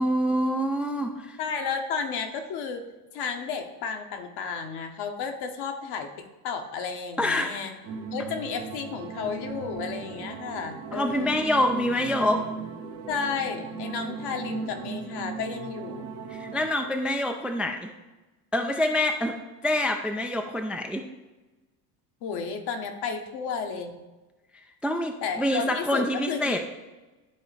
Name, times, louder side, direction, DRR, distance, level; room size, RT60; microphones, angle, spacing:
voice 1, 0.0-1.4 7.2-7.6 10.9-12.4 16.3-17.9 18.5-21.0 24.5-26.6, left 1 dB, ahead, 4 dB, 0.4 m, -26 dB
voice 2, 1.4-2.9 3.1-7.8 8.1-11.4 13.1-16.1 22.2-24.0 25.2-26.6, left 5 dB, 55° left, 5 dB, 1.2 m, -32 dB
sound 1, 7.8-16.7, right 5 dB, 70° right, 1.2 m, -37 dB
11.5 x 3.9 x 3.3 m, 1.1 s
hypercardioid pair, 75°, 48 cm